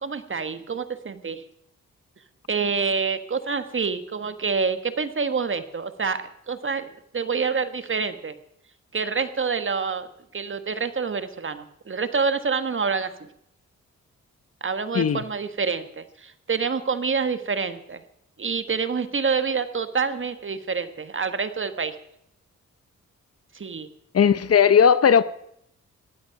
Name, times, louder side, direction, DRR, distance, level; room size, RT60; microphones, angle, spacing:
voice 1, 0.0-1.4 2.5-8.3 8.9-10.1 10.3-13.3 14.6-18.0 18.4-22.0 23.5-23.9, right 5 dB, 40° right, 1.5 m, -27 dB
voice 2, 24.1-25.2, left 7 dB, 50° left, 0.8 m, -17 dB
18.0 x 12.5 x 5.9 m
cardioid pair, 90°, 30 cm